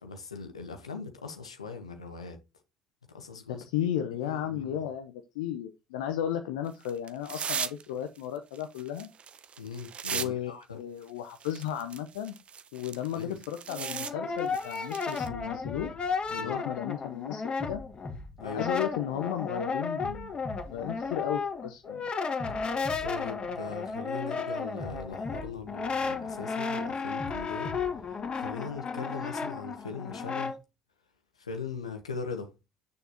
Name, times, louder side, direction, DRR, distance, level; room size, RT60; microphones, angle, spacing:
voice 1, 0.0-2.4 3.1-3.7 4.2-4.8 9.6-10.8 13.1-13.4 16.4-16.6 18.4-18.7 23.0-30.6 31.4-32.5, left 5 dB, 85° left, 1.3 m, -40 dB
voice 2, 3.5-9.1 10.1-12.4 12.7-15.9 16.3-17.8 18.5-20.4 20.7-22.1, left 10 dB, 70° left, 0.8 m, -34 dB
sound 1, 6.7-7.8 8.2-10.3 10.6-10.7 11.3-14.1 14.4-15.3, right 7 dB, 40° right, 0.7 m, -37 dB
Brass instrument, 13.7-18.1 18.4-30.5, left 4 dB, 35° left, 2.3 m, -34 dB
sound 2, 14.3-14.6 15.2-17.0 17.6-19.4 20.0-21.8 22.4-24.2 24.8-26.6 27.2-29.0, left 2 dB, 20° left, 1.8 m, -44 dB
8.5 x 6.8 x 2.8 m
figure-of-eight pair, 60°, 3 cm